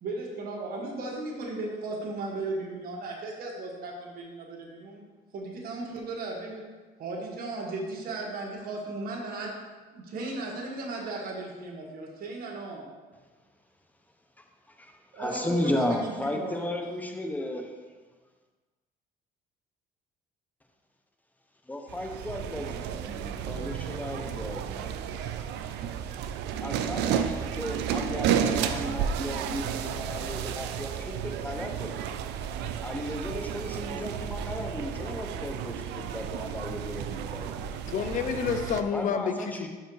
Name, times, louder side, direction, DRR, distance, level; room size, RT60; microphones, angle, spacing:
voice 1, 0.0-5.0 5.3-6.6 7.0-9.5 9.9-12.9 15.1-16.7, right 2 dB, 60° right, -2 dB, 1.5 m, -36 dB
voice 2, 14.4-17.8 21.7-24.9 26.6-31.9 32.8-37.6 38.9-39.7, left 1 dB, 10° left, 3 dB, 0.8 m, -34 dB
sound 1, 21.9-38.8, right 8 dB, 85° right, 0.4 m, -32 dB
voice 3, 37.9-39.7, left 7 dB, 50° left, 8 dB, 0.6 m, -29 dB
5.7 x 4.6 x 4.8 m, 1.4 s
cardioid pair, 110°, 17 cm